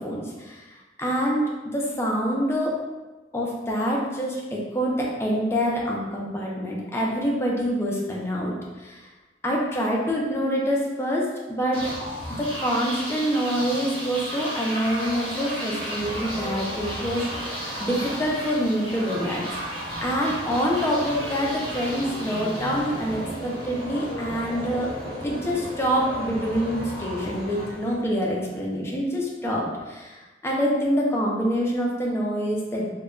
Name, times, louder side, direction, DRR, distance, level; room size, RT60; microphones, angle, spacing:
voice 1, 0.0-2.8 3.3-9.1 9.4-11.9 12.4-17.5 17.8-19.5 19.7-24.9 25.2-32.9, equal, 15° left, -3 dB, 0.4 m, -26 dB
sound 1, 11.7-28.4, equal, 30° right, 0.9 m, -33 dB
2.1 x 2.1 x 3.6 m, 1.2 s
head